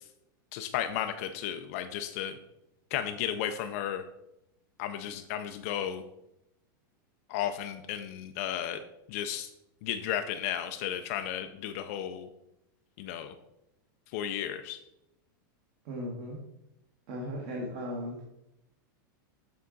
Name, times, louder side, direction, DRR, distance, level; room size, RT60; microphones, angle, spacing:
voice 1, 0.5-2.4 2.9-4.0 4.8-6.0 7.3-8.8 9.1-9.5 9.8-12.3 13.0-13.3 14.1-14.8, left 10 dB, 45° left, 8 dB, 0.4 m, -34 dB
voice 2, 15.8-16.4 17.1-18.2, equal, 40° right, -2 dB, 1.3 m, -36 dB
8.1 x 3.7 x 3.8 m, 0.86 s
supercardioid pair, 165°, 11 cm